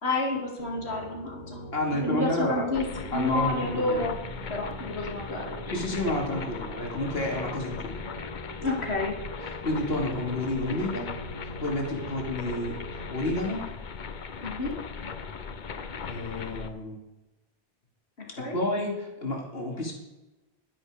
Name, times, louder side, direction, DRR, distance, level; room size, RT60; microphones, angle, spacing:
voice 1, 0.0-1.6 1.9-4.2 4.5-5.5 8.6-9.2 14.4-14.7 18.4-18.6, left 2 dB, 90° left, 0 dB, 2.8 m, -29 dB
Piano, 0.6-13.5, equal, 35° right, 1.7 m, -42 dB
voice 2, 1.7-2.7 3.1-4.1 5.7-7.9 9.6-11.1 11.4-13.6 16.0-17.0 18.5-19.9, left 1 dB, 70° left, 0 dB, 2.8 m, -30 dB
sound 1, 2.7-16.7, left 5 dB, 50° left, 0.9 m, -39 dB
12.0 x 11.0 x 5.0 m, 1.0 s
omnidirectional pair, 1.1 m